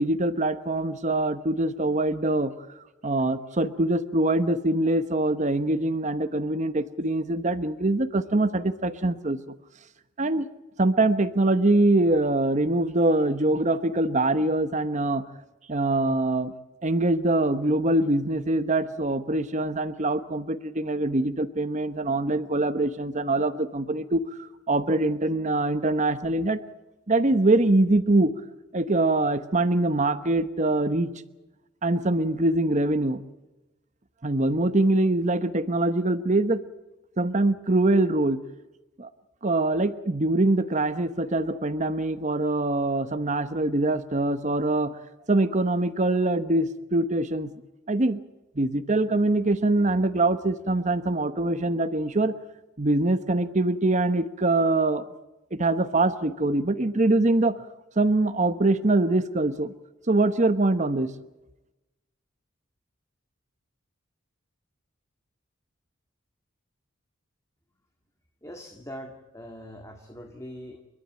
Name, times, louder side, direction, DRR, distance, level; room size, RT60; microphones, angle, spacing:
voice 1, 0.0-2.5 3.0-9.4 10.2-10.5 10.8-15.2 15.7-16.5 16.8-26.6 27.1-28.3 28.7-31.1 31.8-33.2 34.2-36.6 37.2-38.4 39.0-39.1 39.4-45.0 45.3-47.5 47.9-48.2 48.6-52.3 52.8-55.0 55.5-57.6 58.0-59.7 60.1-61.1, right 2 dB, 35° right, 11 dB, 1.0 m, -23 dB
voice 2, 68.4-70.8, equal, 15° left, 3 dB, 2.0 m, -42 dB
30.0 x 12.5 x 9.1 m, 1.0 s
head